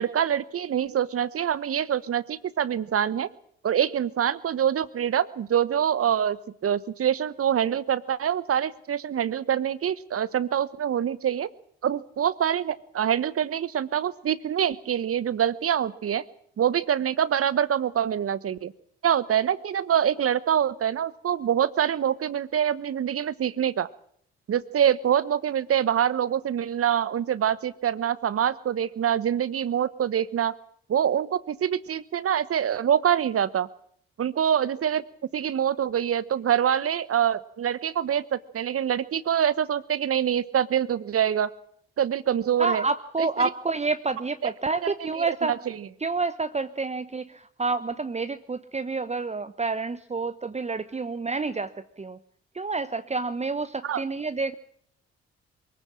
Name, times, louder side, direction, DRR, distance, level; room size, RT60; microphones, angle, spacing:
voice 1, 0.0-3.3 3.6-11.5 11.8-16.2 16.6-18.7 19.0-23.9 24.5-30.5 30.9-33.7 34.2-35.0 35.3-41.5 42.0-42.8 43.2-43.3 44.8-45.6 53.8-54.0, right 9 dB, 50° right, 17 dB, 1.1 m, -25 dB
voice 2, 42.6-45.6 46.0-52.2 52.5-54.6, right 3 dB, 20° right, 11 dB, 1.0 m, -29 dB
23.0 x 15.5 x 7.6 m, 0.66 s
hypercardioid pair, 45°, 30 cm